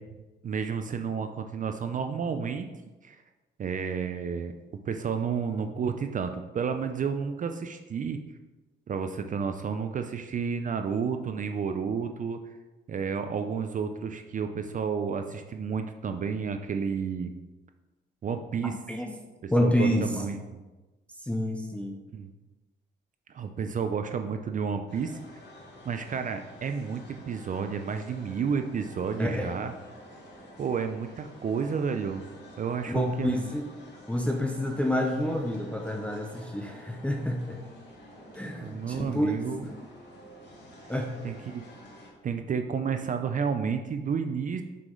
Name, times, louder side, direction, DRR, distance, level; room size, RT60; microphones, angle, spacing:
voice 1, 0.4-2.7 3.0-3.2 3.6-4.5 4.8-8.2 8.9-12.5 12.9-17.3 18.2-18.8 19.4-20.6 22.1-22.3 23.3-25.2 25.9-29.7 30.6-32.3 32.6-33.5 38.6-39.6 41.2-41.6 42.2-44.6, right 6 dB, 40° right, 7 dB, 0.4 m, -31 dB
voice 2, 18.6-19.1 19.5-20.3 21.2-22.0 29.2-29.5 32.9-33.7 34.1-37.6 38.3-39.8 40.9-41.1, left 1 dB, 5° left, 1 dB, 0.6 m, -28 dB
sound 1, 24.9-42.1, left 1 dB, 65° left, 1.9 m, -49 dB
5.7 x 4.9 x 3.8 m, 1.2 s
cardioid pair, 90°, 20 cm